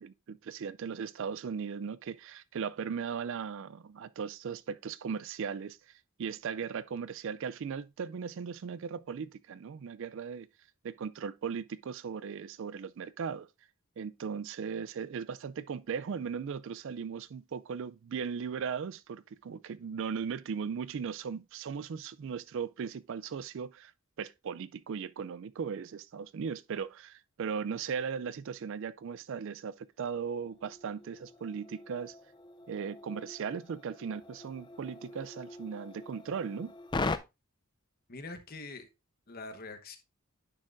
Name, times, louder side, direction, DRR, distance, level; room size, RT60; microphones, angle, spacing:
voice 1, 0.0-5.8 6.2-10.5 10.8-13.5 14.0-23.9 24.2-32.1 32.7-36.7, right 6 dB, 60° right, 0.4 m, -37 dB
sound 1, 27.8-28.0 28.4-28.5 30.2-37.2, left 3 dB, 20° left, 0.4 m, -41 dB
voice 2, 38.1-38.9 39.3-40.0, left 3 dB, 40° left, 1.1 m, -44 dB
9.7 x 6.5 x 2.5 m
head